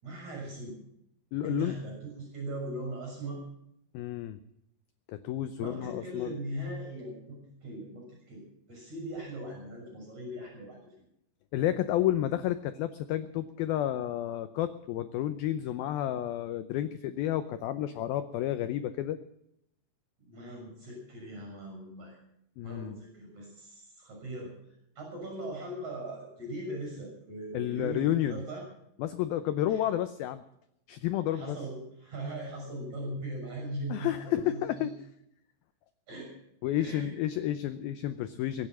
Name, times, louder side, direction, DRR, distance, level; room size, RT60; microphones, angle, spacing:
voice 1, 0.0-0.8 1.4-3.4 5.6-10.8 20.2-22.2 22.6-24.5 25.0-28.6 29.7-29.8 31.3-34.9 36.1-36.3 36.8-37.1, right 1 dB, 40° right, 0 dB, 7.5 m, -40 dB
voice 2, 1.3-1.8 3.9-4.4 5.1-6.4 11.5-19.2 22.6-23.0 27.5-28.4 29.0-30.4 30.9-31.6 33.9-34.9 36.6-38.7, left 12 dB, 90° left, 11 dB, 2.1 m, -31 dB
23.0 x 9.6 x 6.1 m, 0.77 s
omnidirectional pair, 5.2 m